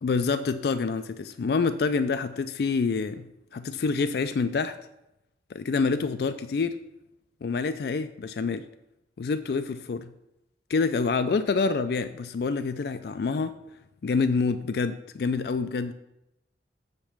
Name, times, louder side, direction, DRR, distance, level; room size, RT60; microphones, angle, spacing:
voice 1, 0.0-4.8 5.5-6.8 7.4-8.7 9.2-10.1 10.7-13.6 14.0-15.9, left 4 dB, 60° left, 10 dB, 0.3 m, -27 dB
7.2 x 5.2 x 5.8 m, 0.89 s
head